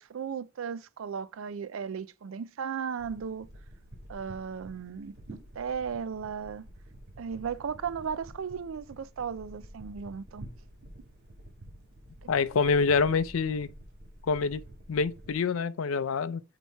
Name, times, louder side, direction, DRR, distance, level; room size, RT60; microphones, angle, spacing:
voice 1, 0.0-3.5 4.1-6.7 7.2-10.5 12.2-12.3, right 6 dB, 75° right, 0.4 m, -36 dB
sound 1, 3.0-15.3, right 1 dB, 55° right, 1.7 m, -49 dB
voice 2, 12.3-13.7 14.2-14.6 14.9-16.4, left 5 dB, 80° left, 0.5 m, -26 dB
8.2 x 3.0 x 4.5 m
head